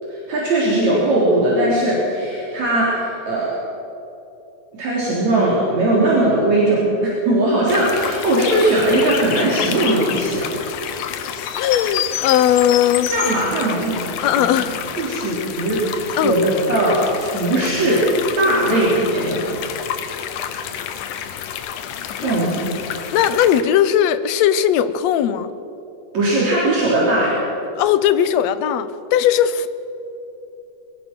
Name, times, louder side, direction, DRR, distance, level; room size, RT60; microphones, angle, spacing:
voice 1, 0.1-3.6 4.8-10.6 13.1-14.5 15.0-19.5 22.2-22.7 26.1-27.4, right 1 dB, 65° right, -6 dB, 5.1 m, -19 dB
sound 1, 7.7-23.6, left 9 dB, 90° left, 2.5 m, -29 dB
voice 2, 11.6-13.1 14.2-14.9 16.2-16.4 22.2-22.3 23.1-25.5 27.8-29.7, left 10 dB, 70° left, 13 dB, 1.9 m, -18 dB
23.0 x 20.0 x 6.1 m, 2.9 s
omnidirectional pair, 3.4 m